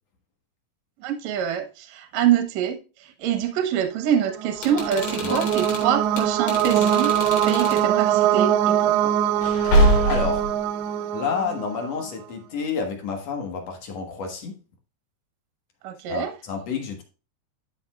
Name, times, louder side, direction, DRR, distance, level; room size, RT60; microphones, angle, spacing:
voice 1, 1.0-7.1 7.5-9.1 15.8-16.3, right 9 dB, 60° right, 1.9 m, -25 dB
sound 1, 4.3-12.0, right 10 dB, 80° right, 2.5 m, -23 dB
sound 2, 4.5-7.9 9.4-10.5, equal, 85° left, 4.4 m, -24 dB
voice 2, 10.1-10.5 11.1-14.6 16.1-17.0, left 6 dB, 60° left, 1.9 m, -29 dB
12.0 x 5.3 x 2.3 m
omnidirectional pair, 4.6 m